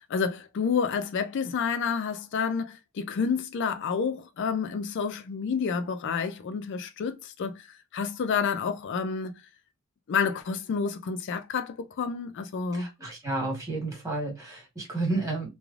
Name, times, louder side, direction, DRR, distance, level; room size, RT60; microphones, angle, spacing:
voice 1, 0.0-9.4 10.1-12.9, left 6 dB, 55° left, 0.4 m, -29 dB
voice 2, 12.7-15.5, right 2 dB, 15° right, 1.3 m, -31 dB
3.1 x 2.2 x 2.4 m
head